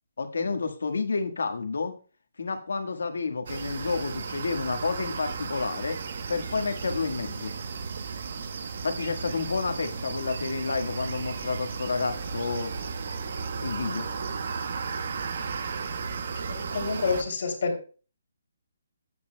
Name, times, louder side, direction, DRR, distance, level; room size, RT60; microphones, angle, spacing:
voice 1, 0.2-1.9 2.4-6.0 6.3-7.5 8.8-12.7 13.6-14.1, left 4 dB, 85° left, 6 dB, 1.6 m, -30 dB
sound 1, 3.5-17.2, right 5 dB, 50° right, 1.1 m, -34 dB
voice 2, 16.3-17.8, left 4 dB, 55° left, 3 dB, 2.9 m, -29 dB
15.0 x 8.6 x 2.3 m, 0.36 s
hypercardioid pair, 170°, 0 cm